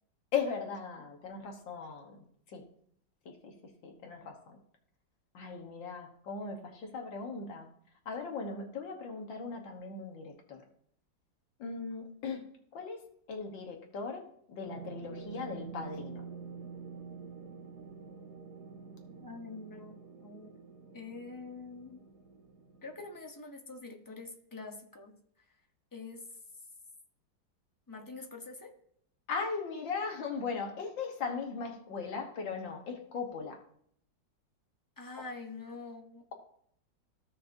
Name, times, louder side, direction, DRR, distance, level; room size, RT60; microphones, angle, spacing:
voice 1, 0.3-2.2 2.5-2.6 3.3-3.5 3.8-4.6 5.3-7.7 8.1-10.6 11.6-12.5 12.7-13.0 13.3-14.2 14.5-16.2 29.3-33.6, left 5 dB, 85° left, 2 dB, 1.9 m, -38 dB
sound 1, 14.6-23.1, right 5 dB, 60° right, 1.9 m, -47 dB
voice 2, 19.2-20.6 20.9-22.0 22.8-25.2 25.9-26.3 27.9-28.7 35.0-36.2, left 3 dB, 20° left, 3 dB, 0.5 m, -45 dB
15.0 x 6.1 x 2.6 m, 0.65 s
omnidirectional pair, 2.0 m